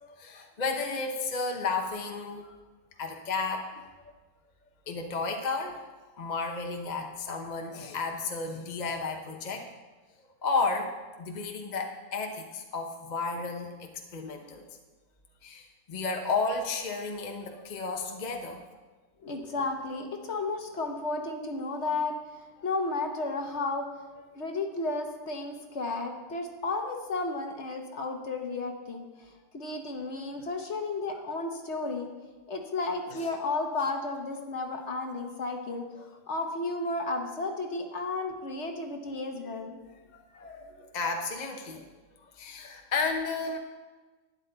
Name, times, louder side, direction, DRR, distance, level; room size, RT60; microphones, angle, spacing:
voice 1, 0.0-2.6 3.0-3.8 4.9-5.8 6.2-9.7 10.4-14.7 15.4-18.6 24.2-24.3 30.2-30.3 33.1-33.3 40.1-41.9 42.2-43.6, left 4 dB, 35° left, 3 dB, 0.9 m, -33 dB
voice 2, 19.2-22.1 22.6-23.9 24.3-32.1 32.5-39.8, left 3 dB, 50° left, 4 dB, 1.3 m, -33 dB
12.5 x 10.0 x 3.9 m, 1.3 s
omnidirectional pair, 1.6 m